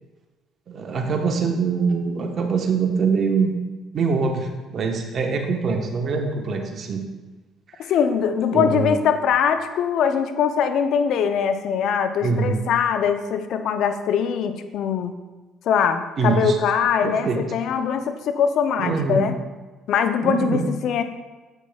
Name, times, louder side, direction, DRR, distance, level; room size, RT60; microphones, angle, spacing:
voice 1, 0.7-3.5 3.9-7.0 7.8-7.9 8.5-8.9 12.2-12.6 16.2-16.6 17.0-17.4 18.8-19.3 20.2-20.7, right 5 dB, 50° right, 3 dB, 1.2 m, -23 dB
voice 2, 7.9-15.1 15.6-19.3 19.9-21.0, left 7 dB, 65° left, 8 dB, 0.6 m, -22 dB
9.7 x 8.1 x 2.4 m, 1.2 s
hypercardioid pair, 55°, 0 cm